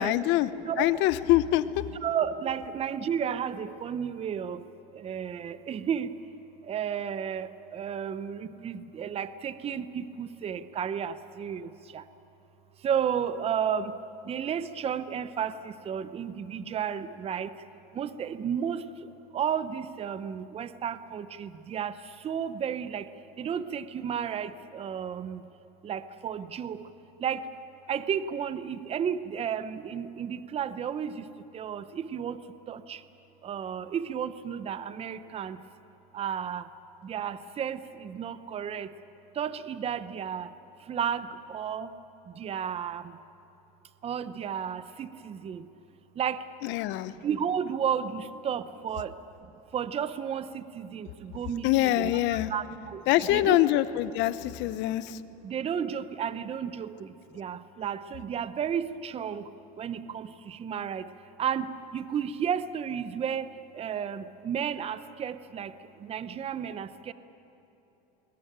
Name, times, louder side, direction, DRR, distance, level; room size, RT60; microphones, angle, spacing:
voice 1, 0.0-0.5 0.8-1.8 46.6-47.1 51.6-52.5 53.1-55.2, left 15 dB, 60° left, 14 dB, 0.9 m, -24 dB
voice 2, 2.0-4.6 4.9-6.1 6.7-12.0 12.8-13.9 14.2-17.5 17.9-18.8 19.3-22.0 22.2-23.0 23.4-25.4 25.8-26.8 27.2-27.4 27.9-31.2 31.5-32.4 32.7-33.0 33.4-35.6 36.1-36.6 37.0-38.9 39.4-40.5 40.9-41.9 42.4-43.0 44.0-45.6 46.2-46.4 47.2-49.1 49.7-53.6 55.4-59.4 59.8-61.0 61.4-61.7 61.9-63.5 63.7-65.7 66.0-67.1, right 8 dB, 30° right, 13 dB, 0.8 m, -32 dB
21.5 x 20.0 x 9.0 m, 3.0 s
supercardioid pair, 115°, 20 cm